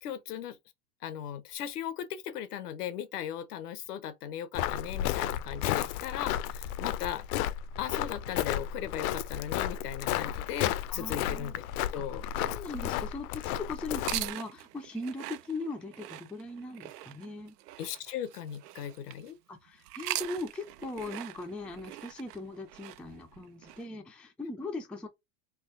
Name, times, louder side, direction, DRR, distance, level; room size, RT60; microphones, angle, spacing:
voice 1, 0.0-0.6 1.0-7.4 7.8-12.2 17.8-19.4, left 10 dB, 90° left, 0.9 m, -38 dB
Walk footsteps, 4.5-14.3, left 12 dB, 70° left, 0.6 m, -33 dB
voice 2, 10.9-11.5 11.9-12.1 12.4-17.6 19.5-25.1, left 2 dB, 5° left, 0.3 m, -39 dB
sound 1, 13.9-19.3 19.8-23.8, right 15 dB, 85° right, 0.5 m, -41 dB
3.6 x 2.8 x 2.5 m
supercardioid pair, 115°, 46 cm